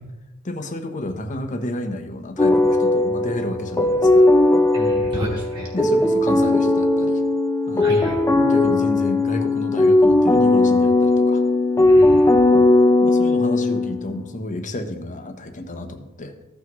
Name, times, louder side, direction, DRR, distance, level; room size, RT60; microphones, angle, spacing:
voice 1, 0.4-4.3 5.7-7.2 7.7-11.4 13.0-16.3, left 1 dB, 35° left, 5 dB, 0.9 m, -31 dB
sound 1, 2.4-14.1, left 2 dB, 15° left, 0.5 m, -17 dB
voice 2, 4.7-5.7 7.8-8.2 11.9-12.6, equal, 20° right, -4 dB, 2.9 m, -30 dB
15.0 x 6.0 x 3.1 m, 0.99 s
head